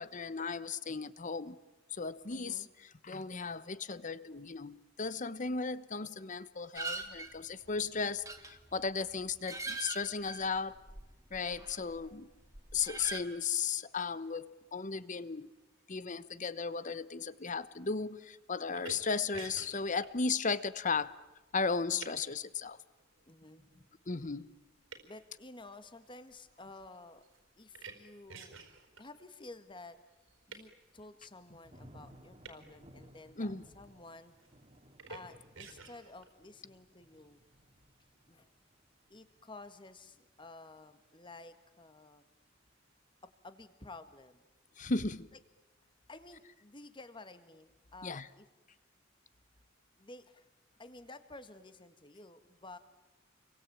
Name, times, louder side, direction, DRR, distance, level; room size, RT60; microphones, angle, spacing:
voice 1, 0.0-1.6 1.9-2.7 3.0-10.7 11.3-12.3 12.7-15.5 15.9-21.1 21.5-22.8 24.1-24.5 33.4-33.6 44.8-45.3 48.0-48.3, left 5 dB, 40° left, 16 dB, 1.0 m, -35 dB
voice 2, 2.3-2.7 21.9-22.2 23.2-23.9 25.0-27.2 27.6-28.6 29.0-30.0 30.5-34.3 35.1-37.4 38.3-38.5 39.1-42.2 43.2-44.4 46.1-48.5 50.0-50.5 50.8-52.8, left 2 dB, 25° left, 10 dB, 1.7 m, -52 dB
sound 1, 6.8-12.1 12.4-13.2, right 3 dB, 15° right, 2.3 m, -43 dB
sound 2, 18.7-22.4 23.0-23.4 24.0-24.3 24.5-29.0 29.9-30.7 32.4-32.6 33.0-34.0 34.3-35.2 35.5-36.3, right 5 dB, 85° right, 4.5 m, -50 dB
Thunder / Rain, 31.2-42.1 42.5-43.0, equal, 30° right, 2.2 m, -61 dB
29.0 x 23.0 x 8.7 m, 1.1 s
head